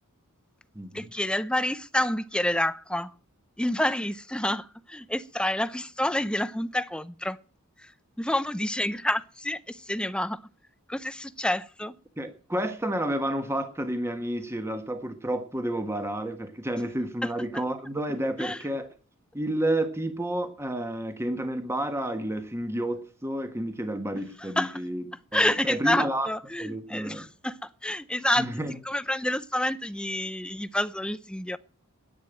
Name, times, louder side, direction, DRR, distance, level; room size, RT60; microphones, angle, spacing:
voice 1, 0.9-3.1 3.6-7.4 7.8-7.9 8.2-10.4 10.9-11.9 18.4-18.6 24.4-24.8 25.3-28.5 28.9-31.6, left 1 dB, 5° left, 0.6 m, -28 dB
voice 2, 12.2-18.9 19.3-25.0 25.3-26.3 26.6-27.3 28.4-28.8, right 1 dB, 10° right, 1.4 m, -30 dB
10.5 x 9.7 x 8.9 m
head